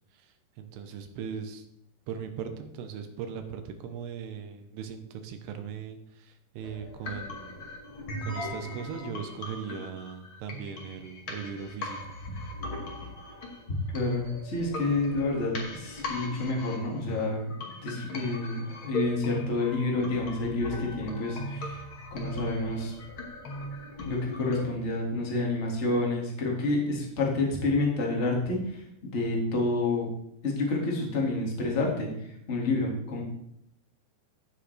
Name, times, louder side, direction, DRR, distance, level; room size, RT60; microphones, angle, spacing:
voice 1, 0.1-1.6 2.1-7.6 8.2-12.1, right 7 dB, 85° right, 7 dB, 2.9 m, -39 dB
sound 1, 6.6-24.6, left 1 dB, 70° left, 1.2 m, -39 dB
voice 2, 13.7-17.5 17.8-21.8 22.1-22.9 24.0-30.1 30.4-32.1 32.5-33.2, left 2 dB, 90° left, -2 dB, 0.6 m, -29 dB
15.0 x 6.4 x 3.3 m, 0.78 s
omnidirectional pair, 4.8 m